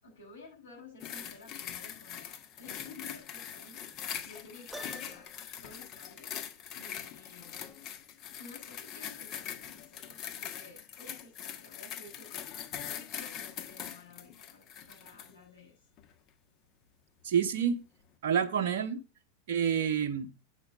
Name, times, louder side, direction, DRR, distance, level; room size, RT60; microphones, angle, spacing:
voice 1, 0.0-5.3 5.6-6.3 6.8-7.7 8.3-15.8, left 3 dB, 75° left, -7 dB, 6.9 m, -53 dB
sound 1, 1.0-15.3 16.0-16.1, left 9 dB, 40° left, 1.5 m, -42 dB
Piano, 4.7-5.6, equal, ahead, 0.9 m, -46 dB
voice 2, 17.2-17.8 18.2-19.0 19.5-20.3, right 8 dB, 60° right, 4 dB, 1.1 m, -28 dB
9.3 x 6.2 x 6.2 m, 0.30 s
figure-of-eight pair, 90°, 0 cm